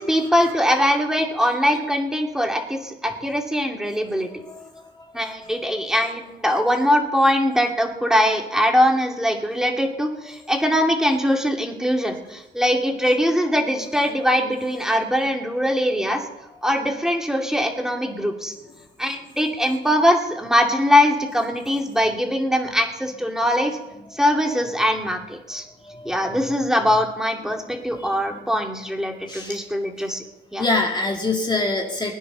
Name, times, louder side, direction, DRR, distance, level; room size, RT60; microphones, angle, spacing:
voice 1, 0.0-4.3 5.1-16.2 16.6-18.5 19.0-23.8 24.1-25.6 26.0-30.2 30.5-30.6, equal, 5° right, 2 dB, 2.7 m, -22 dB
voice 2, 5.2-5.9 25.9-26.4 28.0-28.1 29.3-29.6 30.6-32.1, left 2 dB, 20° left, 1 dB, 2.1 m, -25 dB
20.5 x 10.0 x 5.9 m, 0.98 s
cardioid pair, 90°, 20 cm